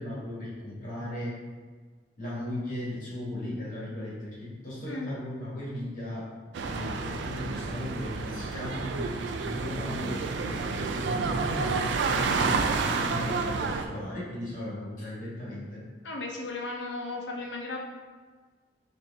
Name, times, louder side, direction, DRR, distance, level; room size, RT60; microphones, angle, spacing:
voice 1, 0.0-1.4 2.2-6.3 6.6-9.1 9.4-15.8, left 1 dB, 50° left, -7 dB, 1.3 m, -36 dB
sound 1, 6.5-13.8, right 4 dB, 80° right, 0.3 m, -30 dB
voice 2, 16.0-17.8, left 2 dB, 90° left, -1 dB, 0.7 m, -35 dB
4.3 x 2.6 x 3.4 m, 1.5 s
head